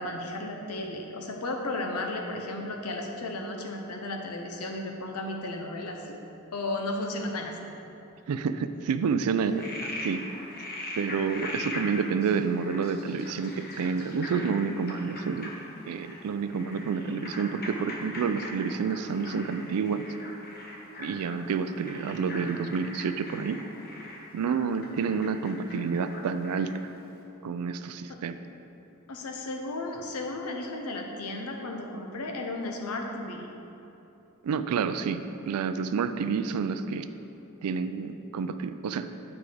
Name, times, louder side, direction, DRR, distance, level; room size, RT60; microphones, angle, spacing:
voice 1, 0.0-6.2 6.5-7.6 24.9-25.0 28.1-28.2 29.1-33.5, left 2 dB, 90° left, 2 dB, 0.8 m, -34 dB
voice 2, 8.3-10.3 11.0-15.5 15.9-20.0 21.0-23.6 24.3-26.9 27.4-28.4 34.4-37.1 37.6-39.1, right 5 dB, 85° right, 11 dB, 0.4 m, -29 dB
Frog, 9.4-26.8, left 1 dB, 45° left, 1.0 m, -41 dB
9.0 x 4.8 x 3.4 m, 2.9 s
head